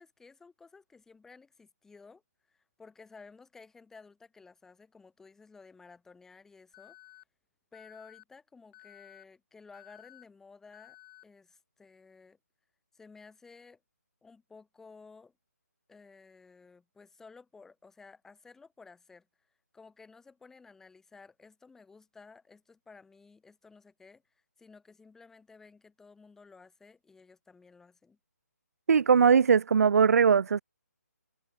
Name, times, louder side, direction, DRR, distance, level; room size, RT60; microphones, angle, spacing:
voice 1, 0.0-2.2 2.5-7.0 7.7-11.0 11.2-12.4 12.9-13.8 14.2-15.3 15.9-19.3 19.7-24.2 24.6-28.2, left 4 dB, 5° left, 6.5 m, -55 dB
Alarm, 6.7-7.2 7.7-8.2 8.7-9.2 9.7-10.2 10.7-11.2, left 18 dB, 25° left, 3.8 m, -54 dB
voice 2, 28.9-30.6, right 6 dB, 60° right, 0.5 m, -21 dB
hypercardioid pair, 155°, 9 cm